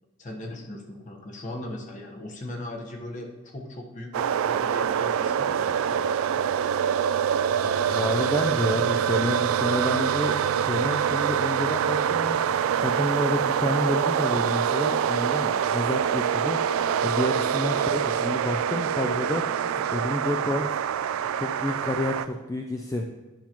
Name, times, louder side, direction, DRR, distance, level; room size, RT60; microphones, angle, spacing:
voice 1, 0.2-6.1 6.3-6.5, left 1 dB, 40° left, 1 dB, 1.1 m, -39 dB
sound 1, 4.1-22.3, right 8 dB, 90° right, 0.3 m, -25 dB
voice 2, 7.6-12.4 12.8-20.7 21.3-23.0, left 1 dB, 15° left, 2 dB, 0.3 m, -29 dB
10.5 x 5.7 x 2.9 m, 1.2 s
head